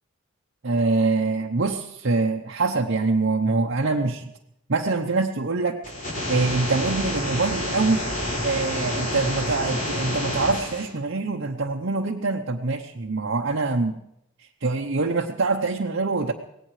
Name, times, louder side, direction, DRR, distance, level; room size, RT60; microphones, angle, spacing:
voice 1, 0.6-4.3 4.7-5.8 6.3-8.1 8.4-14.0 14.4-16.3, right 3 dB, 60° right, 1 dB, 0.8 m, -24 dB
sound 1, 5.8-10.8, left 1 dB, 45° left, 5.7 m, -28 dB
24.5 x 17.5 x 3.2 m, 0.79 s
head